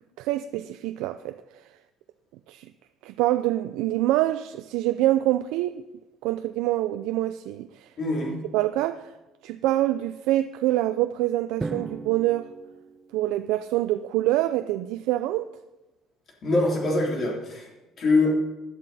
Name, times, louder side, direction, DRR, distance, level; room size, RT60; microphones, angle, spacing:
voice 1, 0.2-1.4 2.5-2.7 3.0-5.8 6.2-7.8 8.5-9.0 9.4-12.5 13.1-15.5, right 15 dB, 85° right, 0.5 m, -25 dB
voice 2, 8.0-8.4 16.4-17.7 18.0-18.4, left 2 dB, 35° left, 3.4 m, -23 dB
Drum, 11.6-13.7, right 3 dB, 15° right, 0.4 m, -37 dB
16.5 x 11.0 x 4.2 m
cardioid pair, 165°, 0 cm